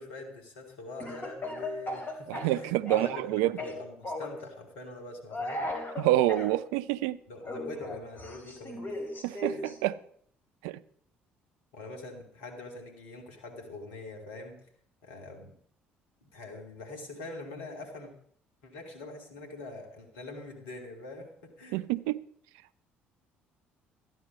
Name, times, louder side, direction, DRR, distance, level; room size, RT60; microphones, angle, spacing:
voice 1, 0.0-5.7 7.3-9.0 9.5-9.6 11.7-14.6 15.0-15.5 16.2-18.1 18.6-21.8, left 2 dB, 75° left, 2.6 m, -44 dB
Speech / Cough, 1.0-3.3 3.6-4.4 5.3-6.5 7.4-9.8, left 1 dB, 35° left, 3.8 m, -37 dB
voice 2, 2.3-3.6 6.0-7.2 9.2-10.0 10.6-10.8 21.7-22.2, right 15 dB, 70° right, 0.5 m, -27 dB
13.5 x 9.6 x 5.4 m
figure-of-eight pair, 50°, 6 cm